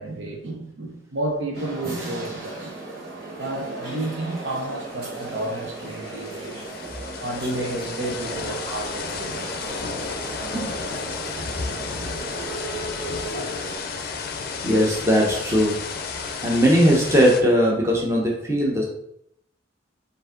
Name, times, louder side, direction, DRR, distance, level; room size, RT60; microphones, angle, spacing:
voice 1, 0.0-6.6 7.2-9.8 10.4-10.7, right 1 dB, 75° right, 0.8 m, -31 dB
sound 1, 1.5-13.8, right 2 dB, 55° right, 1.3 m, -36 dB
sound 2, 4.5-4.6 4.8-17.4, left 4 dB, 50° left, 0.5 m, -33 dB
voice 2, 14.6-15.8 16.2-18.8, equal, 15° right, 0.8 m, -19 dB
4.7 x 2.6 x 3.8 m
head